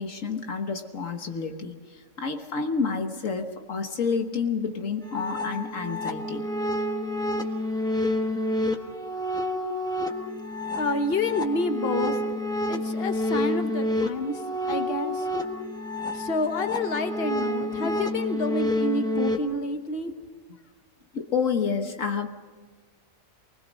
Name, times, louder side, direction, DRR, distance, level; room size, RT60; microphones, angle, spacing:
voice 1, 0.0-6.4 17.8-17.9 21.1-22.3, left 5 dB, 65° left, 5 dB, 1.6 m, -29 dB
sound 1, 5.0-19.4, left 1 dB, 5° left, 1.3 m, -29 dB
voice 2, 10.8-12.2 12.7-15.3 16.1-20.1, left 2 dB, 45° left, 7 dB, 1.5 m, -29 dB
24.5 x 20.0 x 6.3 m, 1.5 s
omnidirectional pair, 1.5 m